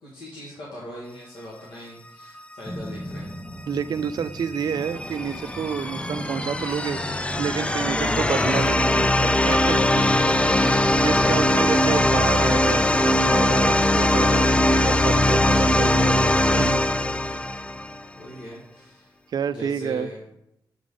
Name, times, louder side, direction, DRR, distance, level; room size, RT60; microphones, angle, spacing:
voice 1, 0.0-3.3 10.5-11.4 14.4-15.4 17.0-17.6 18.1-19.1 19.5-20.2, left 1 dB, 85° left, -6 dB, 1.7 m, -40 dB
sound 1, 2.6-14.2, equal, 10° right, 1.0 m, -39 dB
voice 2, 3.7-7.0 7.4-10.5 11.0-16.8 19.3-20.1, right 7 dB, 60° right, 12 dB, 0.4 m, -29 dB
sound 2, 4.2-18.0, left 1 dB, 15° left, 0.4 m, -21 dB
7.3 x 3.9 x 4.9 m, 0.80 s
cardioid pair, 90°, 8 cm